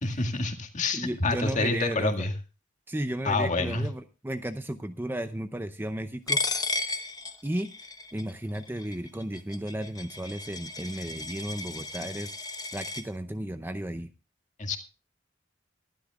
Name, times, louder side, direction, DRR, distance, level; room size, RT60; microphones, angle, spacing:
voice 1, 0.0-2.3 3.2-3.9 14.6-14.8, left 3 dB, 40° left, 5 dB, 1.9 m, -27 dB
voice 2, 0.9-2.3 2.9-6.4 7.4-7.7 8.1-12.3 12.7-14.1, right 1 dB, 10° right, 10 dB, 0.6 m, -34 dB
Coin (dropping), 6.3-13.0, left 3 dB, 20° left, 1.1 m, -34 dB
23.0 x 12.0 x 2.3 m, 0.33 s
head